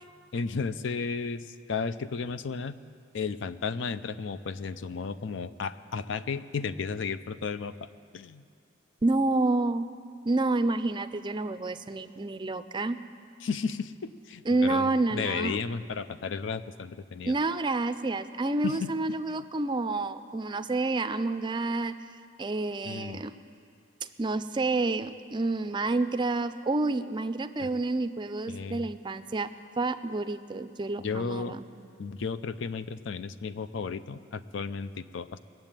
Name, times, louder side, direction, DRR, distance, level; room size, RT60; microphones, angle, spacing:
voice 1, 0.3-2.8 3.1-8.4 13.4-17.3 18.6-18.9 19.3-19.4 22.8-23.2 27.6-27.7 28.5-28.9 31.0-31.6 32.0-35.4, left 5 dB, 65° left, 14 dB, 0.5 m, -34 dB
voice 2, 9.0-9.8 10.3-13.0 14.5-15.6 17.3-21.9 22.4-23.3 24.2-29.5 29.8-31.6, right 2 dB, 25° right, 11 dB, 0.4 m, -29 dB
20.0 x 7.5 x 9.0 m, 2.4 s
head